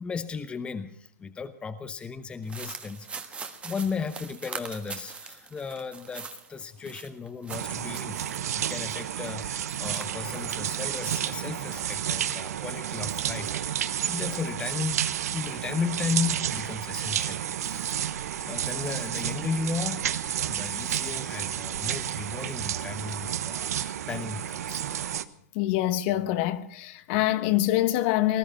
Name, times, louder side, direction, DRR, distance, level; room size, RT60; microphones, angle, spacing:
voice 1, 0.0-15.0 15.3-18.1 18.5-25.0, left 5 dB, 10° left, 0.9 m, -35 dB
sound 1, 2.4-10.6 11.0-12.4, right 5 dB, 15° right, 1.4 m, -43 dB
sound 2, 7.5-25.2, right 10 dB, 70° right, 1.1 m, -31 dB
voice 2, 25.5-28.4, left 14 dB, 40° left, 1.2 m, -25 dB
20.0 x 12.5 x 5.8 m
hypercardioid pair, 135°, 9 cm